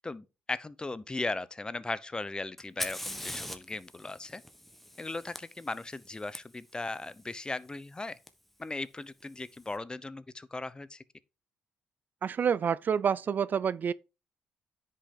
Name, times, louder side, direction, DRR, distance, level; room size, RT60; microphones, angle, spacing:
voice 1, 0.0-4.4 5.0-8.2 8.6-11.0, left 2 dB, 20° left, 0.8 m, -37 dB
Fire, 2.6-6.4 8.3-8.4 9.2-9.6, equal, 5° left, 1.3 m, -42 dB
voice 2, 12.2-13.9, right 7 dB, 50° right, 0.4 m, -28 dB
9.9 x 5.5 x 3.8 m
supercardioid pair, 60°, 4 cm